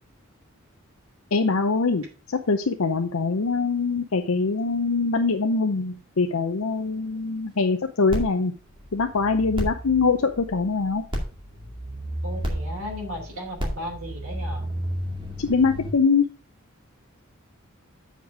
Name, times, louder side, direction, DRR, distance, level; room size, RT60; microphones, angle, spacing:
voice 1, 1.3-8.5 8.9-11.0 15.4-16.2, left 4 dB, 75° left, 5 dB, 0.7 m, -23 dB
sound 1, 8.1-15.9, equal, 25° right, 2.2 m, -32 dB
voice 2, 12.2-14.7, left 1 dB, 70° right, -2 dB, 3.1 m, -35 dB
8.0 x 5.2 x 4.8 m, 0.35 s
head